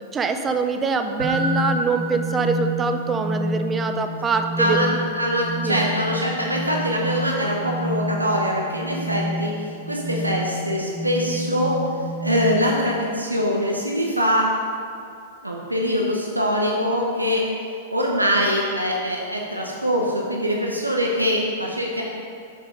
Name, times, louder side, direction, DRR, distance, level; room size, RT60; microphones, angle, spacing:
voice 1, 0.0-4.9 5.6-5.8, right 4 dB, 15° right, 7 dB, 0.5 m, -24 dB
sound 1, 1.2-12.9, equal, 65° right, 1.7 m, -29 dB
voice 2, 4.6-11.9 12.2-14.5 15.4-17.4 17.9-22.0, equal, 85° right, -1 dB, 0.8 m, -23 dB
6.5 x 6.0 x 5.3 m, 2.4 s
figure-of-eight pair, 100°, 0 cm